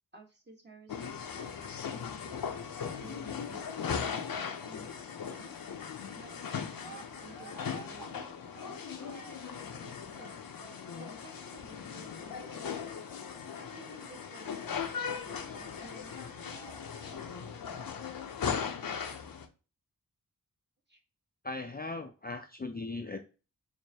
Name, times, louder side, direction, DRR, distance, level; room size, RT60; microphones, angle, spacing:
voice 1, 0.1-2.3 3.0-5.5 6.1-8.3 8.6-13.0 13.5-16.6 20.9-21.0 22.7-22.8, right 2 dB, 30° right, 1 dB, 1.3 m, -55 dB
sound 1, 0.9-19.5, left 7 dB, 70° left, 0.6 m, -38 dB
Cheering, 6.3-11.3 12.0-17.6, right 4 dB, 50° right, 1.9 m, -55 dB
voice 2, 21.4-23.2, left 3 dB, 25° left, 5 dB, 0.4 m, -38 dB
4.6 x 2.6 x 2.8 m, 0.33 s
cardioid pair, 45°, 36 cm